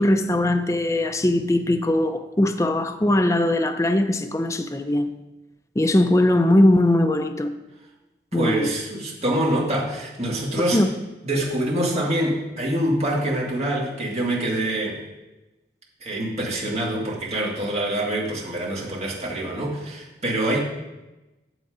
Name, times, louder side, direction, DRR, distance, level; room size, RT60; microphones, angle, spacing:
voice 1, 0.0-5.1 5.8-7.5 8.3-8.7 10.7-10.9, left 1 dB, 15° left, 0.5 m, -20 dB
voice 2, 8.3-10.8 11.2-15.0 16.0-20.6, right 1 dB, 35° right, 2.1 m, -25 dB
8.2 x 7.2 x 4.9 m
head